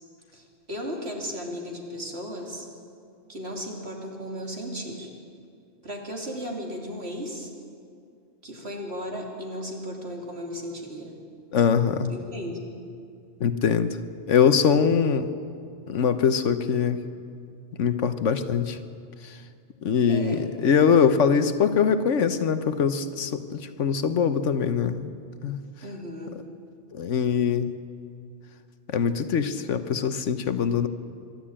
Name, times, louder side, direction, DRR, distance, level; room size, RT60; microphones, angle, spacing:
voice 1, 0.3-2.7 3.3-5.1 5.8-7.5 8.4-11.1 12.1-12.7 20.1-20.5 25.8-26.4, equal, 55° right, 0 dB, 3.0 m, -35 dB
voice 2, 11.5-12.1 13.4-14.0 14.3-15.3 15.9-17.0 17.8-18.8 19.8-25.1 25.4-25.6 26.9-27.7 28.9-30.9, left 6 dB, 75° left, 11 dB, 1.2 m, -22 dB
25.0 x 12.0 x 8.7 m, 2.4 s
omnidirectional pair, 1.3 m